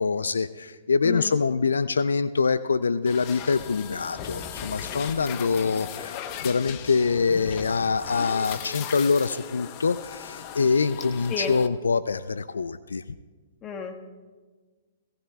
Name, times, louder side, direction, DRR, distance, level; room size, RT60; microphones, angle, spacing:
voice 1, 0.0-13.0, left 5 dB, 80° left, 15 dB, 0.3 m, -25 dB
sound 1, 3.1-11.7, left 9 dB, 40° left, 0.8 m, -38 dB
voice 2, 13.6-14.0, left 6 dB, 25° left, 3 dB, 1.4 m, -31 dB
18.0 x 17.5 x 2.3 m, 1.4 s
hypercardioid pair, 120°, 0 cm